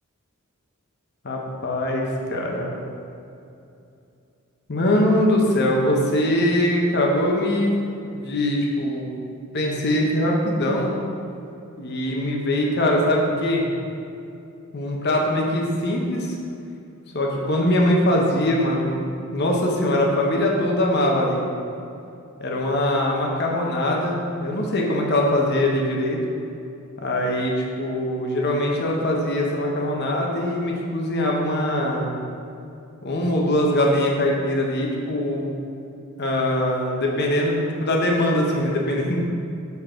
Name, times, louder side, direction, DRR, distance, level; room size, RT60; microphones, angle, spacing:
voice 1, 1.2-2.0 2.3-2.7 4.7-9.1 9.5-10.9 11.8-13.6 14.7-16.4 17.1-19.0 19.3-21.4 22.4-26.2 27.0-32.1 33.0-35.5 36.2-39.3, left 1 dB, 50° left, -1 dB, 0.9 m, -22 dB
6.9 x 4.1 x 5.0 m, 2.6 s
head